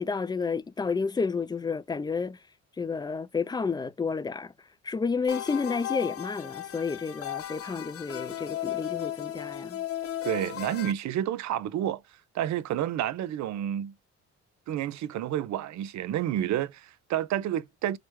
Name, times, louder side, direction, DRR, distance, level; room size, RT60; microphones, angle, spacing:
voice 1, 0.0-2.4 2.8-4.5 4.8-9.8, left 5 dB, 15° left, 0.3 m, -30 dB
sound 1, 5.3-10.9, left 12 dB, 50° left, 0.6 m, -35 dB
voice 2, 10.2-12.0 12.3-13.9 14.7-18.0, right 11 dB, 65° right, 0.5 m, -30 dB
4.8 x 2.1 x 3.0 m
cardioid pair, 90°, 30 cm